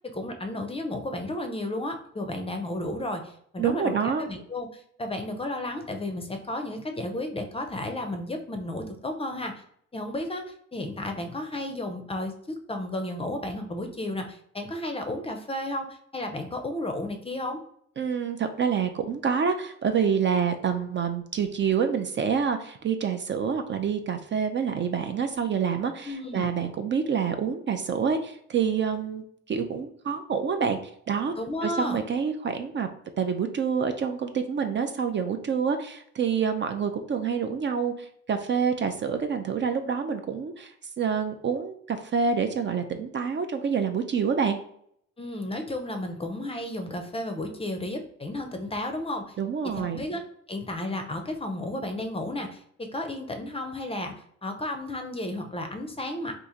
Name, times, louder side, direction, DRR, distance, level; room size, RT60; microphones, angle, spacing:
voice 1, 0.1-9.5 9.9-17.6 26.0-26.5 31.4-32.0 45.2-49.3 49.6-50.2 50.5-54.1 54.4-56.3, left 1 dB, 20° left, 5 dB, 0.5 m, -33 dB
voice 2, 3.6-4.3 18.0-30.8 31.1-31.4 31.6-32.9 33.2-44.6 49.4-50.0, right 6 dB, 40° right, 7 dB, 0.4 m, -27 dB
2.8 x 2.5 x 3.7 m, 0.66 s
cardioid pair, 90°, 30 cm